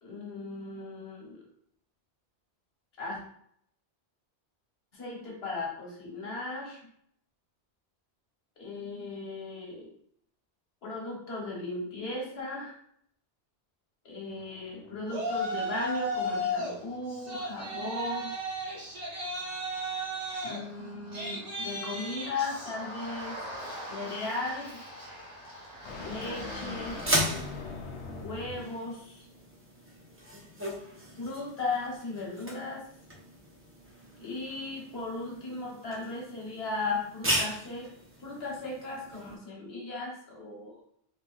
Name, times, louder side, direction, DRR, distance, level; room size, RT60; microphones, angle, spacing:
voice 1, 0.0-1.4 3.0-3.2 4.9-6.8 8.6-9.9 10.8-12.8 14.0-18.3 20.4-23.4 23.9-24.8 26.0-27.0 28.2-29.3 31.2-32.8 34.2-37.9 38.2-40.8, left 3 dB, 70° left, -3 dB, 1.3 m, -36 dB
sound 1, 14.3-28.8, left 3 dB, 85° left, 0.9 m, -46 dB
Yell, 15.1-16.8 17.1-27.5, equal, 40° right, 1.1 m, -36 dB
sound 2, 26.9-39.4, equal, 20° right, 0.4 m, -37 dB
3.7 x 2.6 x 2.3 m, 0.69 s
omnidirectional pair, 1.1 m